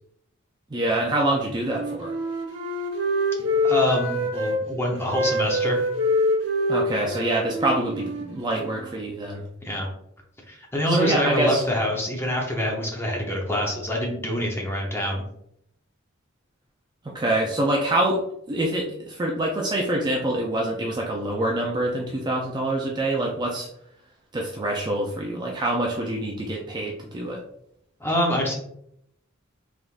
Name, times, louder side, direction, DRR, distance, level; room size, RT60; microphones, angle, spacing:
voice 1, 0.7-2.1 6.7-9.4 10.9-11.6 17.0-18.2 18.5-23.7 24.3-27.4, right 1 dB, 20° right, -1 dB, 0.4 m, -25 dB
Wind instrument woodwind instrument, 1.6-4.6 5.1-8.9, left 1 dB, 65° right, 1.0 m, -25 dB
voice 2, 3.6-5.8 9.6-9.9 10.5-15.2 28.0-28.6, left 1 dB, 10° left, -1 dB, 0.8 m, -25 dB
3.7 x 3.4 x 2.5 m, 0.73 s
head